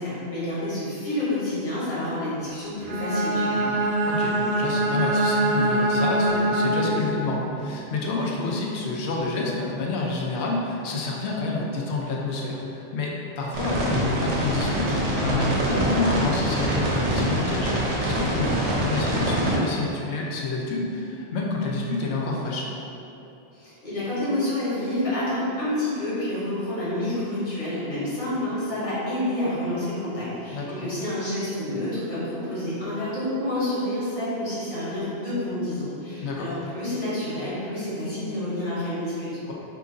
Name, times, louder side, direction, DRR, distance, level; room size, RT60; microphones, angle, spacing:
voice 1, 0.0-3.7 23.5-39.3, left 1 dB, 50° left, -10 dB, 1.2 m, -29 dB
Bowed string instrument, 2.8-7.3, right 1 dB, 85° right, 0.8 m, -23 dB
voice 2, 4.0-15.0 15.2-22.7 30.5-30.9 36.2-36.5 39.5-39.6, left 3 dB, 90° left, -2 dB, 0.9 m, -29 dB
sound 1, 13.5-19.6, equal, 40° right, 0.6 m, -24 dB
2.9 x 2.5 x 3.7 m, 2.8 s
omnidirectional pair, 1.1 m